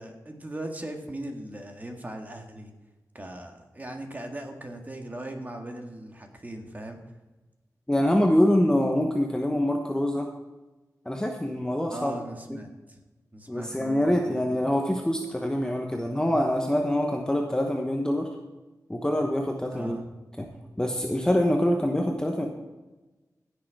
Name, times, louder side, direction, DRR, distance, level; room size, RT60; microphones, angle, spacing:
voice 1, 0.0-2.7 3.1-7.0 11.9-13.0 13.3-14.6 19.7-20.1, right 1 dB, 25° right, 3 dB, 1.7 m, -39 dB
voice 2, 7.9-10.3 11.0-12.1 13.5-18.3 18.9-20.0 20.4-20.5 20.8-22.5, left 1 dB, 10° left, 2 dB, 1.0 m, -25 dB
16.0 x 6.6 x 4.7 m, 1.1 s
wide cardioid pair, 90°, 6 cm